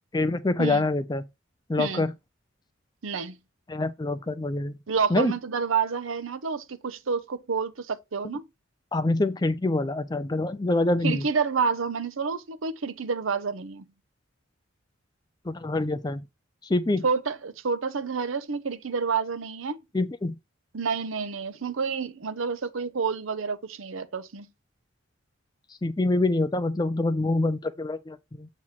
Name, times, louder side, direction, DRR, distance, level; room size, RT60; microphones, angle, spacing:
voice 1, 0.1-1.2 1.7-2.1 3.7-4.7 5.1-5.3 8.9-11.3 15.5-16.2 16.6-17.0 19.9-20.3 25.8-28.5, left 2 dB, 20° left, 0.4 m, -25 dB
voice 2, 3.0-3.3 4.9-8.4 11.0-13.9 17.0-19.8 20.7-24.5, right 5 dB, 80° right, 0.7 m, -29 dB
7.4 x 3.0 x 5.7 m
head